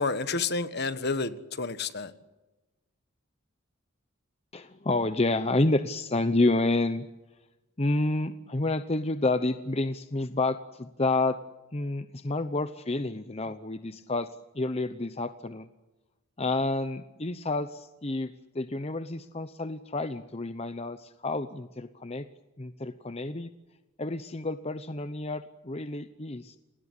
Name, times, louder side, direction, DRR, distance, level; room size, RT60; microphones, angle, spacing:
voice 1, 0.0-2.1, left 4 dB, 50° left, 1.4 m, -30 dB
voice 2, 4.5-7.1 7.8-11.4 11.7-15.7 16.4-22.3 22.6-23.5 24.0-26.6, left 2 dB, 30° left, 0.8 m, -29 dB
29.0 x 20.5 x 8.3 m
head